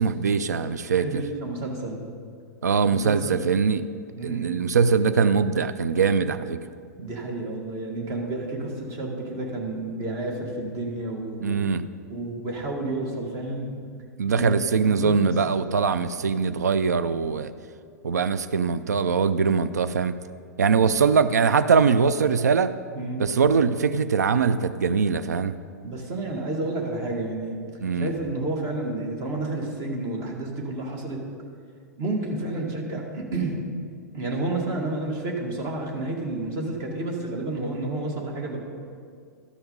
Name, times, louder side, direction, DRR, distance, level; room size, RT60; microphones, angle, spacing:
voice 1, 0.0-1.2 2.6-3.8 4.2-6.6 11.4-11.8 14.2-17.5 18.0-20.1 20.6-22.7 23.2-25.5 27.8-28.1, right 5 dB, 75° right, 12 dB, 0.4 m, -22 dB
voice 2, 1.0-2.0 2.9-3.4 4.2-4.7 7.0-11.6 12.1-13.7 14.3-14.5 14.8-15.4 22.9-23.2 25.8-27.6 27.9-31.3 32.0-33.6 34.1-38.6, right 2 dB, 35° right, 1 dB, 1.8 m, -30 dB
13.0 x 5.6 x 5.4 m, 2.2 s
figure-of-eight pair, 100°, 9 cm